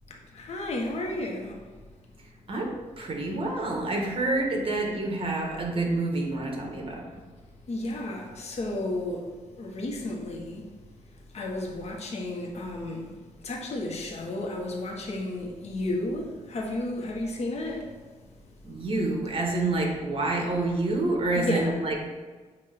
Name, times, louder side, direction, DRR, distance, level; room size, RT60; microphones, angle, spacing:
voice 1, 0.3-1.6 7.7-9.3 9.6-10.6 11.3-13.1 13.4-17.8 21.3-21.7, left 2 dB, 55° left, 0 dB, 1.5 m, -32 dB
voice 2, 2.5-7.1 18.6-22.1, right 2 dB, 45° right, 1 dB, 1.5 m, -28 dB
7.9 x 3.0 x 6.0 m, 1.4 s
cardioid pair, 105°, 13 cm